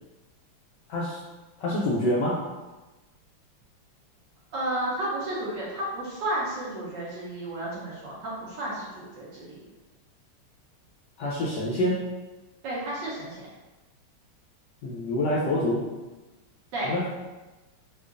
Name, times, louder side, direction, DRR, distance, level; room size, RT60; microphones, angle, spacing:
voice 1, 0.9-1.2 1.6-2.4 11.2-12.0 14.8-15.8 16.8-17.1, left 1 dB, 75° left, -5 dB, 1.0 m, -26 dB
voice 2, 4.5-9.6 12.6-13.5 16.7-17.1, right 1 dB, 65° right, -6 dB, 1.3 m, -32 dB
4.5 x 2.4 x 2.4 m, 1.1 s
omnidirectional pair, 2.3 m